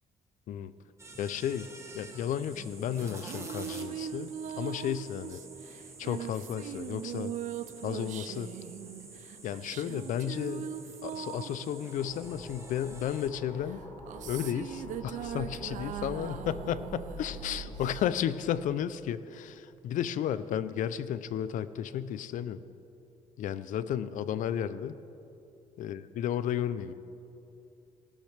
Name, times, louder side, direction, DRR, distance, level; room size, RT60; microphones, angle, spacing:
sound 1, 1.0-13.3, right 2 dB, 20° right, 1.2 m, -49 dB
voice 1, 1.2-5.4 6.0-7.3 7.8-8.5 9.4-10.7 11.0-13.8 14.3-22.6 23.4-25.0 25.8-26.9, left 9 dB, 70° left, 14 dB, 0.5 m, -33 dB
sound 2, 2.9-12.8 13.7-18.3, right 10 dB, 65° right, 0.4 m, -41 dB
sound 3, 12.0-18.0, equal, 25° left, 2.8 m, -45 dB
17.5 x 12.0 x 3.3 m, 2.8 s
cardioid pair, 135°, 14 cm